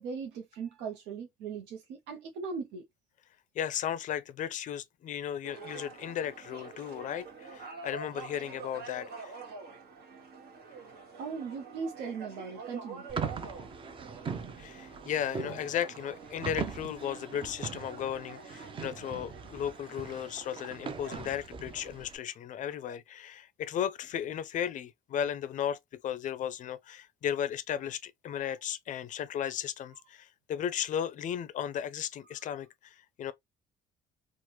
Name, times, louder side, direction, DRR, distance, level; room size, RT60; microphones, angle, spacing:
voice 1, 0.0-2.9 11.2-13.0 28.4-28.5, right 5 dB, 90° right, 0.5 m, -39 dB
voice 2, 3.6-9.3 14.6-33.3, left 9 dB, 50° left, 0.4 m, -35 dB
sound 1, 5.4-21.2, right 5 dB, 70° right, 1.2 m, -47 dB
sound 2, 13.1-22.2, right 6 dB, 30° right, 0.5 m, -40 dB
3.2 x 2.1 x 2.8 m
cardioid pair, 110°, 17 cm